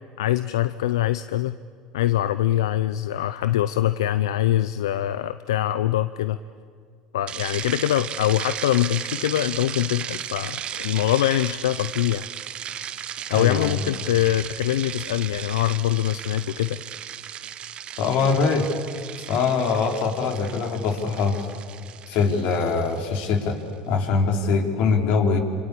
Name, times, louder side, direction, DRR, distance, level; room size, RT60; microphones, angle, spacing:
voice 1, 0.2-1.6 1.9-6.4 7.1-12.3 13.3-16.8, left 13 dB, 90° left, 13 dB, 0.6 m, -23 dB
sound 1, 7.3-23.5, right 10 dB, 45° right, 1.2 m, -35 dB
voice 2, 13.3-13.8 18.0-18.7 19.3-21.5 22.1-23.6 23.9-25.4, left 5 dB, 65° left, 3 dB, 4.1 m, -22 dB
26.0 x 26.0 x 8.5 m, 2.2 s
hypercardioid pair, 90°, 2 cm